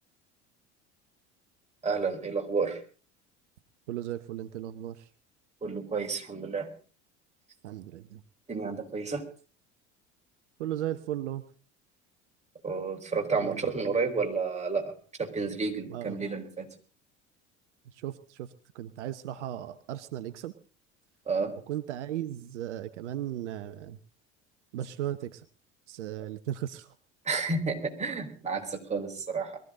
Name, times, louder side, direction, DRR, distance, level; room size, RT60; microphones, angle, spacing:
voice 1, 1.8-2.8 5.6-6.7 8.5-9.2 12.6-14.9 15.2-16.7 21.3-21.5 27.2-29.6, right 4 dB, 20° right, 2 dB, 4.7 m, -31 dB
voice 2, 3.9-5.1 7.6-8.2 10.6-11.4 13.4-13.6 15.9-16.2 17.9-18.5 18.7-20.5 21.7-24.0 24.7-25.4 25.9-26.9, right 12 dB, 75° right, 11 dB, 1.0 m, -36 dB
22.5 x 14.5 x 3.9 m, 0.39 s
hypercardioid pair, 70°, 35 cm